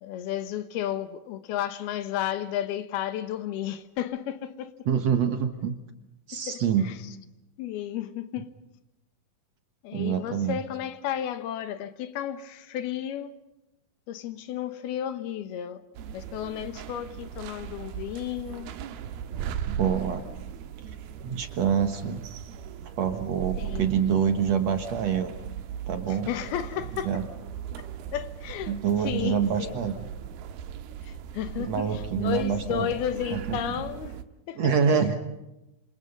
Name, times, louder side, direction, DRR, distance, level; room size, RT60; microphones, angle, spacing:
voice 1, 0.0-4.7 6.5-7.0 7.6-8.5 9.8-13.3 14.1-15.8 16.1-18.7 23.6-24.0 26.1-27.2 27.8-27.9 28.1-29.8 31.0-34.2 34.5-34.7, left 10 dB, 90° left, 3.2 m, -33 dB
voice 2, 4.9-5.8 6.3-6.9 9.9-10.6 19.6-20.2 20.8-20.9 21.2-22.2 23.0-25.3 25.9-26.3 27.0-27.2 28.7-30.0 31.6-32.9 33.3-33.6 34.6-35.2, right 7 dB, 55° right, 2.2 m, -26 dB
sound 1, 15.9-34.2, right 9 dB, 85° right, 3.2 m, -38 dB
28.0 x 27.0 x 5.4 m
omnidirectional pair, 4.3 m